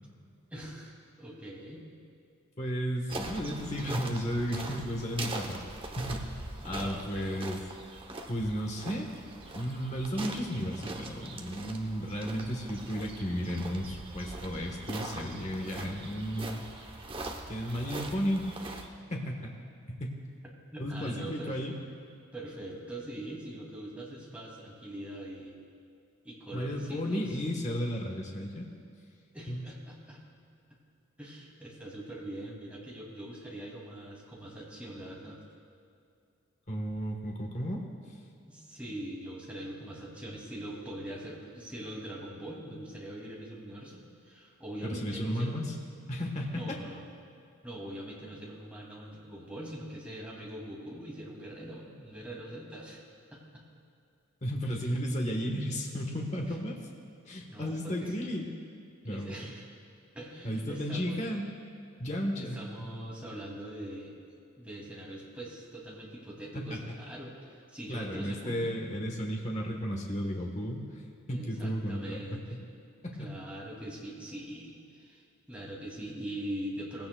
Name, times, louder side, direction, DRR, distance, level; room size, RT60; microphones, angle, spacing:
voice 1, 0.5-1.8 6.6-7.4 20.7-21.7 22.3-25.6 26.2-27.4 29.3-30.2 31.2-35.4 38.5-45.5 46.5-47.0 47.6-53.0 53.3-53.6 54.8-54.9 57.5-58.1 59.0-59.6 60.1-61.2 62.3-64.2 64.6-68.8 71.3-72.6 73.2-77.1, right 1 dB, 5° right, -4 dB, 2.5 m, -42 dB
voice 2, 2.6-5.6 6.0-6.3 6.6-7.6 8.3-9.1 9.5-16.7 17.5-18.8 19.1-19.4 19.9-20.2 20.8-21.7 26.5-28.7 29.5-29.7 36.7-37.8 44.8-45.7 46.1-46.8 54.4-56.8 57.3-58.5 59.0-59.5 60.4-61.5 62.0-62.9 66.5-66.8 67.9-70.9 71.3-72.6 73.0-73.3, equal, 35° left, 0 dB, 1.2 m, -33 dB
sound 1, 3.1-18.9, right 2 dB, 25° right, 0.8 m, -42 dB
19.0 x 16.0 x 2.3 m, 2.5 s
head